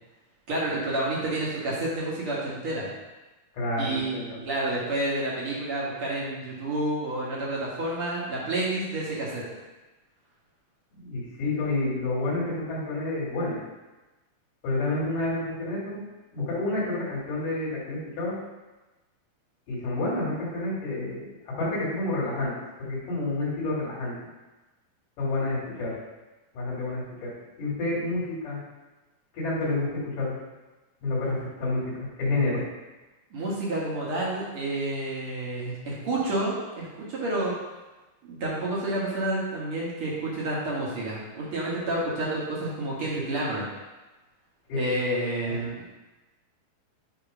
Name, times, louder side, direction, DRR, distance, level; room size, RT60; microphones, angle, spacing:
voice 1, 0.5-2.9 3.8-9.4 33.3-37.5 38.2-43.6 44.7-45.9, right 1 dB, 55° right, -6 dB, 1.7 m, -29 dB
voice 2, 3.5-4.4 11.0-13.6 14.6-16.0 16.3-18.4 19.7-22.5 22.8-24.2 25.2-26.0 26.5-28.6 29.3-30.4 31.0-32.6 44.7-44.9 45.5-45.7, left 2 dB, 65° left, -6 dB, 3.3 m, -29 dB
8.4 x 2.9 x 4.9 m, 1.1 s
omnidirectional pair, 4.2 m